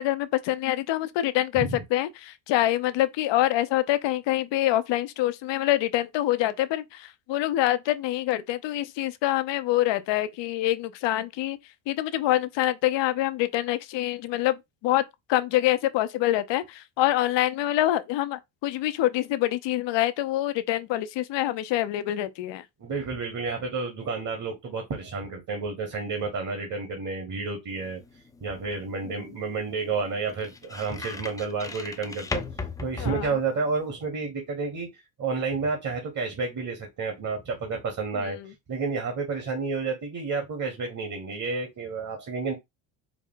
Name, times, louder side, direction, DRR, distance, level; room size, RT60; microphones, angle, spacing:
voice 1, 0.0-11.6 11.9-15.0 15.3-22.6 29.1-29.3 33.0-33.4 38.1-38.5, left 14 dB, 60° left, 0.7 m, -26 dB
voice 2, 22.8-28.0 28.4-32.4 32.8-34.9 35.2-38.4 38.7-42.5, right 4 dB, 40° right, 1.5 m, -30 dB
sound 1, 27.7-33.9, left 4 dB, 10° left, 0.3 m, -39 dB
4.9 x 2.1 x 3.7 m
supercardioid pair, 95°, 49 cm